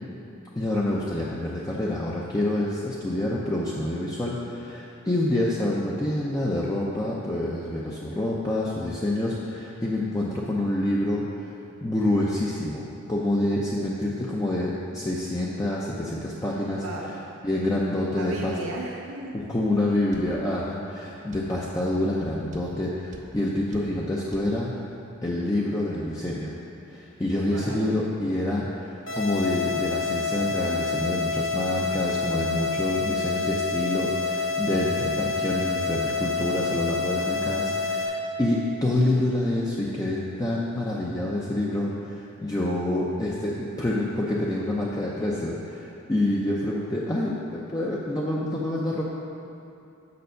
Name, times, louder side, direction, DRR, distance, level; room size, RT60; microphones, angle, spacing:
voice 1, 0.5-11.6 11.8-16.8 17.4-18.6 19.3-24.7 25.2-26.6 26.9-49.0, left 1 dB, 15° left, -5 dB, 0.5 m, -27 dB
voice 2, 16.8-17.1 18.2-19.4 27.5-28.0, right 2 dB, 90° right, -2 dB, 0.9 m, -35 dB
sound 1, 20.1-20.3 21.3-21.5 22.5-22.7 23.1-23.3 23.7-23.9 24.3-24.5, right 3 dB, 35° right, 0.5 m, -45 dB
sound 2, 29.1-38.1, left 4 dB, 70° left, 1.3 m, -28 dB
6.8 x 5.4 x 6.6 m, 2.8 s
head